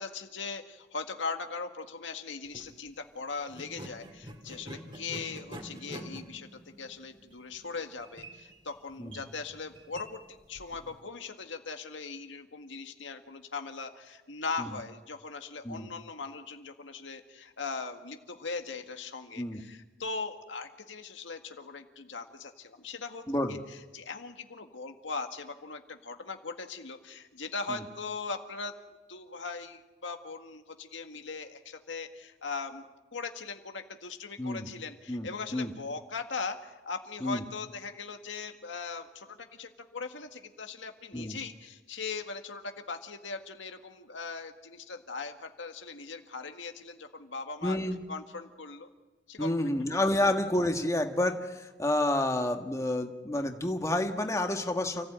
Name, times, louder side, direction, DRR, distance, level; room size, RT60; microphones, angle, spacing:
voice 1, 0.0-23.2 23.5-28.7 29.1-32.9 33.1-47.8 48.1-48.9 49.3-49.5 49.9-50.2, left 4 dB, 85° left, 6 dB, 1.8 m, -40 dB
sound 1, 2.4-2.7 3.5-11.0, right 1 dB, 25° right, 2.3 m, -47 dB
voice 2, 35.1-35.7 37.2-37.4 41.1-41.4 47.6-48.0 49.4-55.1, left 1 dB, 15° left, 4 dB, 1.5 m, -29 dB
29.5 x 15.5 x 8.9 m, 1.2 s
head